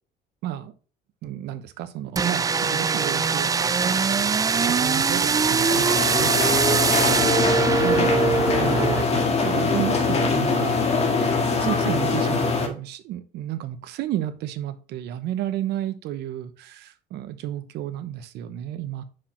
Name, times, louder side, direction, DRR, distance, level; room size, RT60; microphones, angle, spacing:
voice 1, 0.4-0.7 1.2-4.0 4.6-7.0 7.8-10.8 11.6-19.0, right 12 dB, 80° right, 11 dB, 0.9 m, -32 dB
sound 1, 2.2-9.0, right 5 dB, 20° right, 0.3 m, -22 dB
sound 2, 5.4-12.7, left 4 dB, 40° left, 1.6 m, -23 dB
5.8 x 4.9 x 4.3 m, 0.37 s
cardioid pair, 110°, 17 cm